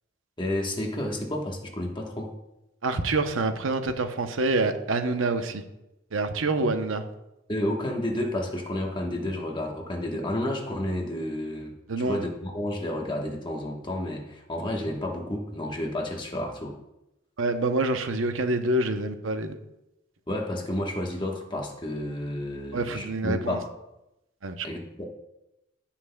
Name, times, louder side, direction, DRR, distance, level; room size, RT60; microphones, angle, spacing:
voice 1, 0.4-2.3 6.6-6.7 7.5-16.8 20.3-23.7 24.6-25.0, left 1 dB, 25° left, 1 dB, 1.2 m, -31 dB
voice 2, 2.8-5.6 6.1-7.0 11.9-12.2 17.4-19.6 22.7-23.6 24.4-24.7, right 2 dB, 80° right, 8 dB, 0.7 m, -26 dB
16.0 x 5.8 x 2.2 m, 0.92 s
head